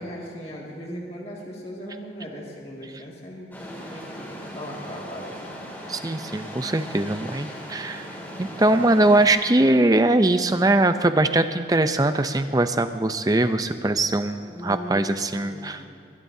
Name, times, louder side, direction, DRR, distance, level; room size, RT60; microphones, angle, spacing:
voice 1, 0.0-5.6 14.5-15.8, equal, 35° left, -3 dB, 2.2 m, -38 dB
sound 1, 3.5-9.3, equal, 10° left, 2.6 m, -38 dB
voice 2, 5.9-8.1 8.4-15.8, right 2 dB, 20° right, 9 dB, 0.5 m, -21 dB
22.0 x 20.0 x 2.8 m, 2.5 s
head